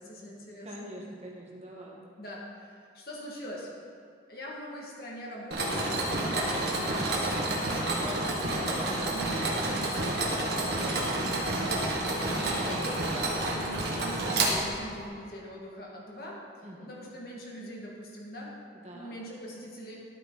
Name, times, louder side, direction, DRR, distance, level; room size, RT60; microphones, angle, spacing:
voice 1, 0.0-0.9 2.2-3.7 4.3-16.4 16.8-18.5 18.9-20.1, equal, 55° left, -3 dB, 2.1 m, -42 dB
voice 2, 0.6-2.0 16.6-16.9 18.8-19.1, equal, 35° right, -3 dB, 1.7 m, -44 dB
Mechanisms, 5.5-15.1, right 2 dB, 60° right, 1.7 m, -29 dB
12.0 x 8.8 x 4.1 m, 2.4 s
head